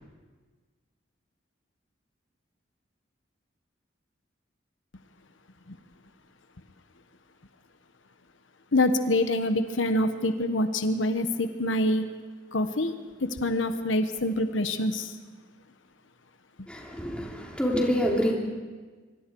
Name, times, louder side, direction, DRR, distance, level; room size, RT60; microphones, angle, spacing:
voice 1, 8.7-12.1 12.5-12.9 13.2-15.1, left 1 dB, 85° left, 8 dB, 1.2 m, -25 dB
voice 2, 16.7-18.3, equal, 5° left, -2 dB, 3.3 m, -26 dB
24.5 x 24.0 x 4.7 m, 1.4 s
head